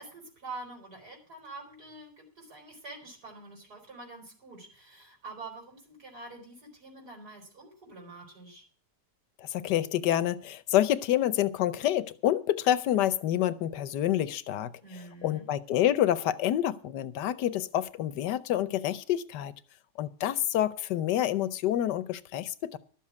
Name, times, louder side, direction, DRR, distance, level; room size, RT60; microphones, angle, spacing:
voice 1, 0.0-8.6 14.8-15.5, right 3 dB, 65° right, 5.1 m, -46 dB
voice 2, 9.4-14.7 15.2-19.5 20.0-22.8, left 12 dB, 90° left, 1.4 m, -27 dB
12.5 x 7.4 x 8.4 m
omnidirectional pair, 1.8 m